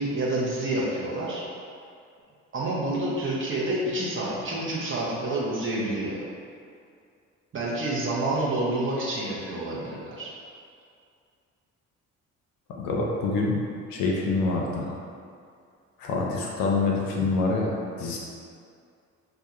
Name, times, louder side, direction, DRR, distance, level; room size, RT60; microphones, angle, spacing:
voice 1, 0.0-1.4 2.5-6.2 7.5-10.3, right 1 dB, 30° right, -6 dB, 0.8 m, -28 dB
voice 2, 12.8-13.6 13.9-14.9 16.0-18.2, left 3 dB, 65° left, -2 dB, 0.6 m, -26 dB
2.4 x 2.2 x 2.9 m, 2.3 s
hypercardioid pair, 50°, 38 cm